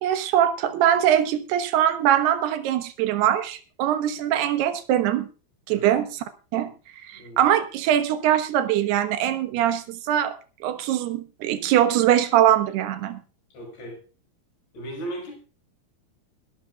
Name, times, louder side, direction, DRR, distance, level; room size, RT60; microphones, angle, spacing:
voice 1, 0.0-5.3 5.7-6.2 6.5-6.7 7.0-10.4 10.6-13.2, right 11 dB, 90° right, 10 dB, 3.3 m, -22 dB
voice 2, 7.1-7.4 13.5-14.0 14.7-15.4, right 1 dB, 90° left, 3 dB, 7.1 m, -36 dB
21.0 x 12.5 x 2.4 m, 0.37 s
omnidirectional pair, 4.5 m